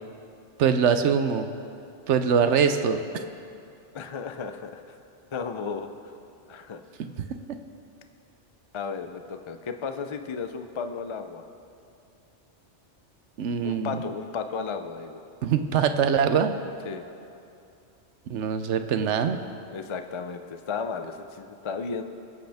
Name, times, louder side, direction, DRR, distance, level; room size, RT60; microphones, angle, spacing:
voice 1, 0.6-1.5 2.1-3.0 7.5-7.6 13.4-14.0 15.4-16.6 18.3-19.4, right 7 dB, 90° right, 8 dB, 1.0 m, -23 dB
voice 2, 3.9-4.8 5.3-5.9 6.5-6.8 8.7-11.4 13.6-15.2 16.9-17.1 19.7-22.0, left 5 dB, 40° left, 7 dB, 0.4 m, -34 dB
22.0 x 7.8 x 3.5 m, 2.6 s
omnidirectional pair, 1.2 m